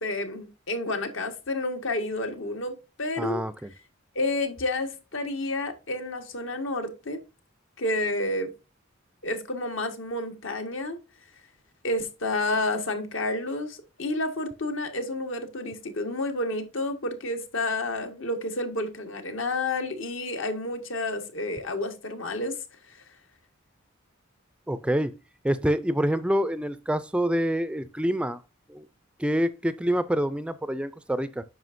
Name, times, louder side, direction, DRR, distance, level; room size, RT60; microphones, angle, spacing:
voice 1, 0.0-3.4 4.1-7.2 7.8-8.5 9.2-11.0 11.8-22.6 22.9-23.0, left 2 dB, 75° left, 1.5 m, -30 dB
voice 2, 3.2-3.7 24.7-25.1 25.4-28.4 28.7-28.9 29.2-31.4, equal, 5° right, 0.3 m, -26 dB
9.3 x 5.9 x 2.6 m
head